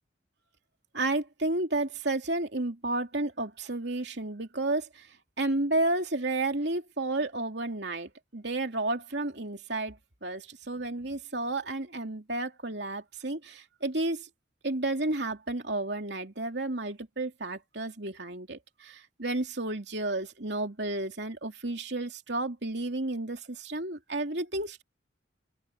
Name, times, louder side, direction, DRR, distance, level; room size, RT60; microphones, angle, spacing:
voice 1, 0.9-14.3 14.6-24.8, right 2 dB, 65° right, 3.0 m, -32 dB
open air
head